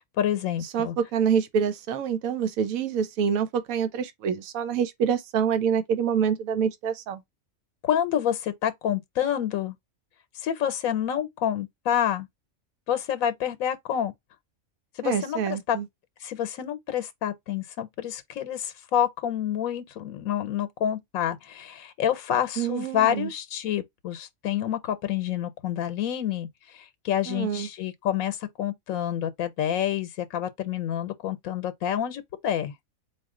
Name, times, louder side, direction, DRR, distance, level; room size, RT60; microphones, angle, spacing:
voice 1, 0.2-0.9 7.8-9.7 10.3-12.3 12.9-14.1 15.0-15.8 16.2-32.7, left 10 dB, 85° left, 1.1 m, -28 dB
voice 2, 0.7-7.2 15.0-15.9 22.6-23.3 27.3-27.7, right 7 dB, 90° right, 1.1 m, -26 dB
4.1 x 2.4 x 3.6 m
omnidirectional pair, 1.4 m